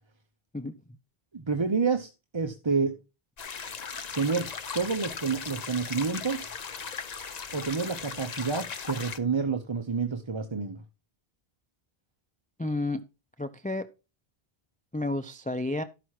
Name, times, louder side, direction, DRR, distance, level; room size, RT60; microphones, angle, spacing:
voice 1, 1.3-2.9 4.1-6.5 7.5-10.8, right 5 dB, 30° right, 0.8 m, -29 dB
sound 1, 3.4-9.2, left 6 dB, 45° left, 0.8 m, -38 dB
voice 2, 12.6-13.0 13.4-13.9 14.9-15.8, left 2 dB, 10° left, 0.5 m, -31 dB
12.5 x 5.9 x 4.8 m
omnidirectional pair, 1.0 m